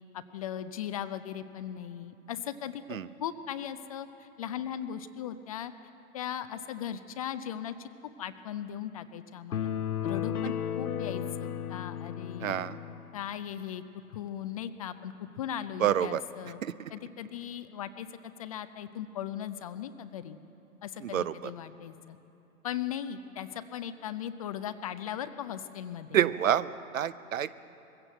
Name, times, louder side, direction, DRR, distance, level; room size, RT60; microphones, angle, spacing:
voice 1, 0.1-5.7 6.1-7.9 8.2-9.7 10.0-12.6 13.1-13.8 14.1-16.6 16.9-20.4 20.8-22.2 22.6-26.2, left 10 dB, 25° left, 11 dB, 0.5 m, -38 dB
sound 1, 9.5-13.1, left 9 dB, 75° left, 0.9 m, -34 dB
voice 2, 12.4-12.8 15.8-16.2 16.6-16.7 21.0-21.3 26.1-27.6, right 10 dB, 60° right, 16 dB, 0.8 m, -27 dB
21.5 x 15.5 x 7.9 m, 2.9 s
figure-of-eight pair, 115°, 44 cm